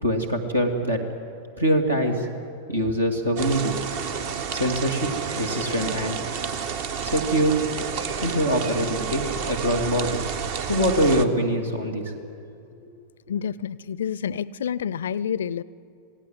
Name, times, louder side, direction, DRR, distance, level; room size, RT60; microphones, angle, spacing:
voice 1, 0.0-1.0 1.6-2.3 2.7-3.7 4.5-5.1 5.3-6.2 7.0-7.5 8.2-10.3 10.7-12.1, equal, 80° right, 3 dB, 2.6 m, -23 dB
sound 1, 3.4-11.3, right 6 dB, 50° right, 1.1 m, -30 dB
voice 2, 13.3-15.6, left 8 dB, 65° left, 22 dB, 0.5 m, -28 dB
27.0 x 18.0 x 7.7 m, 2.5 s
figure-of-eight pair, 90°, 0 cm